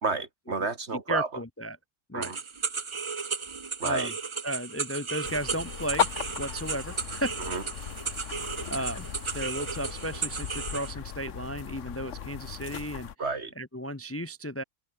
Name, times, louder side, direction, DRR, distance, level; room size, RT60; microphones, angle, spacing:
voice 1, 0.0-1.3 2.1-2.4 3.8-4.1 7.5-7.6 13.2-13.5, right 4 dB, 55° right, 2.4 m, -30 dB
voice 2, 0.9-1.8 2.1-2.3 3.8-4.1 4.4-6.1 6.4-7.3 8.7-13.1 13.6-14.6, right 1 dB, 10° left, 0.8 m, -34 dB
sound 1, 2.2-10.9, right 5 dB, 30° right, 0.6 m, -35 dB
sound 2, 5.2-13.1, left 9 dB, 70° left, 1.3 m, -36 dB
open air
omnidirectional pair, 1.4 m